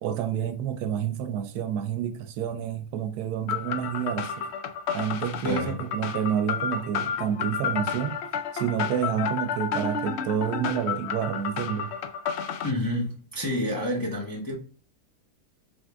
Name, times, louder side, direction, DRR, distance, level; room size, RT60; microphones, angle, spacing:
voice 1, 0.0-4.3 4.9-8.2 8.5-11.9, right 9 dB, 75° right, 1.1 m, -29 dB
sound 1, 3.5-12.7, left 7 dB, 85° left, 0.5 m, -31 dB
voice 2, 5.4-5.8 12.6-14.6, left 1 dB, 20° left, 0.6 m, -29 dB
3.9 x 3.6 x 3.4 m
omnidirectional pair, 1.7 m